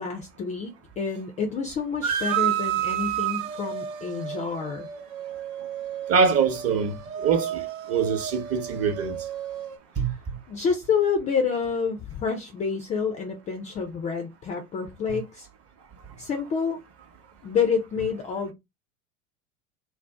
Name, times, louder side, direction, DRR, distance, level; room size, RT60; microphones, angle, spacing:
voice 1, 0.0-4.9 10.5-15.5 16.2-16.8 17.4-18.5, left 6 dB, 20° left, 0.3 m, -28 dB
sound 1, 2.0-9.8, right 10 dB, 70° right, 0.8 m, -31 dB
voice 2, 6.1-7.6 7.9-9.2 10.0-10.1 15.1-15.2, right 6 dB, 35° right, 0.8 m, -23 dB
2.6 x 2.0 x 3.3 m
hypercardioid pair, 80°, 43 cm